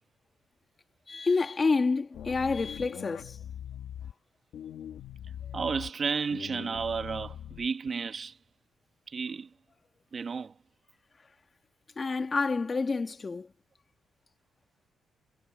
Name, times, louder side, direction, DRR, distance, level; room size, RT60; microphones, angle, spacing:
voice 1, 1.1-3.4 12.0-13.5, left 4 dB, 35° left, 2.3 m, -28 dB
sound 1, 2.1-4.1 4.5-5.9 6.3-7.9, left 10 dB, 80° left, 2.0 m, -42 dB
voice 2, 5.5-8.4 9.1-9.5 10.1-10.5, right 5 dB, 45° right, 1.8 m, -32 dB
cardioid pair, 95°, 0 cm